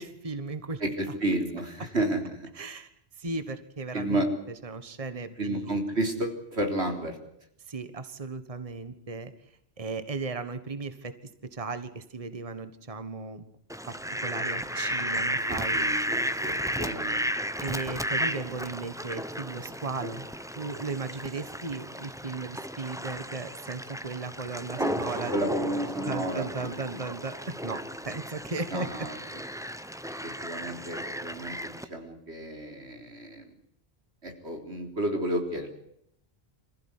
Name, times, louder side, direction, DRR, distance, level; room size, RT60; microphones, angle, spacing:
voice 1, 0.0-0.8 2.5-2.9 3.2-4.2 4.6-5.8 7.7-9.3 9.8-11.1 11.4-13.5 13.9-14.0 14.2-15.8 17.6-20.3 20.5-25.3 26.0-29.1, right 3 dB, 35° right, 10 dB, 1.5 m, -36 dB
voice 2, 0.8-2.5 3.9-4.3 5.4-7.2 15.1-17.2 24.8-25.0 25.3-27.0 28.7-29.2 30.2-33.5 34.2-35.8, right 1 dB, 90° right, 4 dB, 4.2 m, -32 dB
Fowl, 13.7-31.8, equal, 5° right, 1.0 m, -34 dB
26.5 x 15.5 x 9.7 m, 0.75 s
omnidirectional pair, 1.1 m